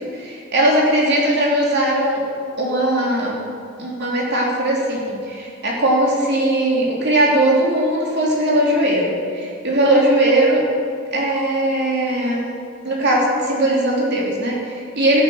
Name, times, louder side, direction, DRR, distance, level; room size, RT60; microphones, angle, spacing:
voice 1, 0.0-2.2 2.6-3.5 3.8-10.6 11.1-12.5 12.8-15.2, right 1 dB, 55° right, -3 dB, 3.2 m, -19 dB
13.5 x 11.0 x 6.3 m, 2.4 s
head